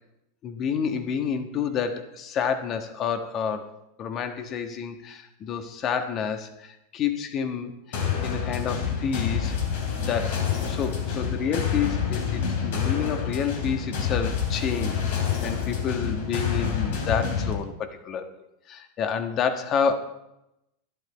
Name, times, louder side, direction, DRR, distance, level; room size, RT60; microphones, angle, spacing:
voice 1, 0.4-3.7 4.0-9.6 10.0-15.1 15.4-18.3 18.7-19.9, left 7 dB, 40° left, 7 dB, 1.4 m, -29 dB
sound 1, 7.9-17.5, left 7 dB, 70° left, 3.3 m, -27 dB
12.0 x 11.5 x 4.1 m, 0.86 s
hypercardioid pair, 115°, 0 cm